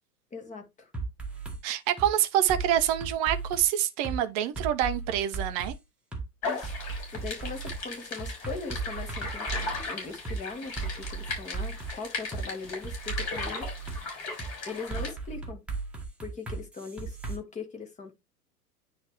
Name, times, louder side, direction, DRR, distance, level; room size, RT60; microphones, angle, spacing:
voice 1, 0.3-0.9 6.4-6.8 7.1-13.7 14.6-15.6 16.2-18.1, left 4 dB, 15° left, 1.4 m, -40 dB
sound 1, 0.9-1.6 2.0-2.1 2.5-4.2 4.5-5.7 6.1-6.2 6.6-9.9 10.2-10.4 10.8-12.4 12.8-14.0 14.4-14.5 14.9-17.4, right 4 dB, ahead, 1.5 m, -36 dB
voice 2, 1.6-5.7, right 11 dB, 25° right, 0.6 m, -26 dB
sound 2, 6.4-15.1, left 3 dB, 35° left, 3.9 m, -37 dB
9.5 x 3.3 x 3.3 m
figure-of-eight pair, 100°, 47 cm